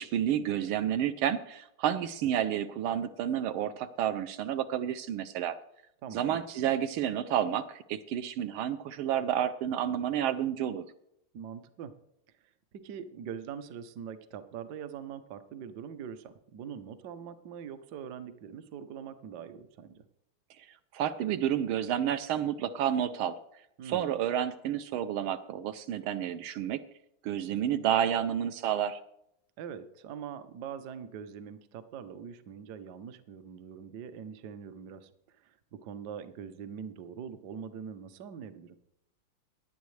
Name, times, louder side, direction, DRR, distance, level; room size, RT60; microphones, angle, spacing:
voice 1, 0.0-5.6 6.1-10.8 20.9-23.4 23.9-26.8 27.2-29.0, right 10 dB, 80° right, 10 dB, 1.4 m, -30 dB
voice 2, 6.0-6.4 11.3-11.9 12.8-20.0 23.8-24.2 29.6-35.6 35.8-38.8, right 7 dB, 60° right, 11 dB, 1.2 m, -43 dB
17.5 x 10.5 x 3.2 m, 0.77 s
omnidirectional pair, 2.4 m